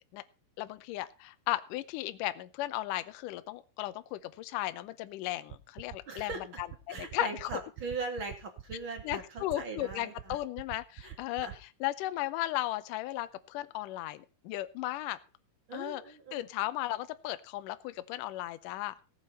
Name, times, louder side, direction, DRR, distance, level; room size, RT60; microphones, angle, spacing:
voice 1, 0.6-6.3 6.6-7.5 9.0-11.5 11.8-15.2 15.7-16.0 16.3-18.9, left 16 dB, 75° left, 13 dB, 2.1 m, -35 dB
sound 1, 5.5-11.6, right 12 dB, 85° right, 3.0 m, -43 dB
voice 2, 6.1-6.4 6.9-10.4 11.0-11.2 11.4-11.5 15.7-16.5, right 3 dB, 35° right, 4 dB, 2.7 m, -40 dB
17.5 x 7.6 x 5.6 m, 0.32 s
omnidirectional pair, 4.4 m